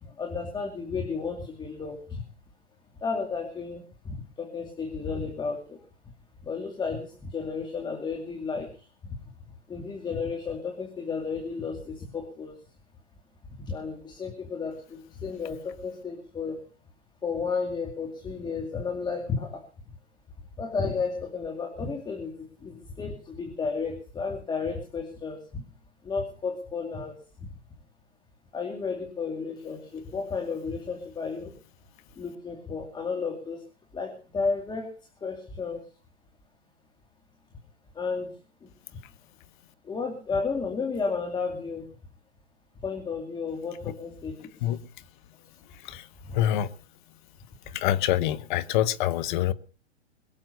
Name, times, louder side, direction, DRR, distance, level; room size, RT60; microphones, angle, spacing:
voice 1, 0.0-2.2 3.0-5.8 6.4-8.7 9.0-9.2 9.7-12.5 13.7-16.6 17.2-19.6 20.6-25.6 26.0-27.2 28.5-31.5 32.2-33.6 33.9-34.9 35.2-35.8 37.9-38.3 39.8-41.8 42.8-44.5 46.2-46.4, left 5 dB, 15° left, 2.4 m, -32 dB
voice 2, 45.8-46.7 47.7-49.5, left 12 dB, 45° left, 1.2 m, -26 dB
22.0 x 7.5 x 6.8 m
hypercardioid pair, 125°, 33 cm